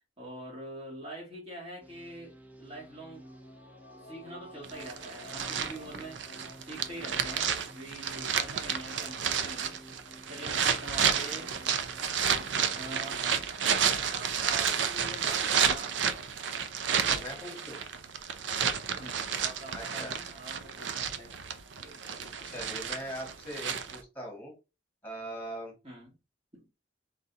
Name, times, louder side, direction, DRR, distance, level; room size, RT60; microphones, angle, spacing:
voice 1, 0.2-3.2 4.0-6.2 6.6-9.8 10.3-11.5 12.8-13.2 14.1-16.1 19.0-21.4 21.8-22.7 25.8-26.1 26.5-26.7, right 1 dB, 30° right, 2.2 m, -45 dB
sound 1, 1.8-13.5, right 1 dB, 10° right, 0.5 m, -53 dB
sound 2, 2.7-7.5 7.8-7.9, left 1 dB, 60° left, 0.7 m, -53 dB
sound 3, 4.6-24.0, right 7 dB, 70° right, 0.5 m, -31 dB
voice 2, 17.0-17.8 19.7-20.1 22.4-24.5 25.0-25.7, equal, 10° left, 1.9 m, -41 dB
3.9 x 3.7 x 2.7 m
head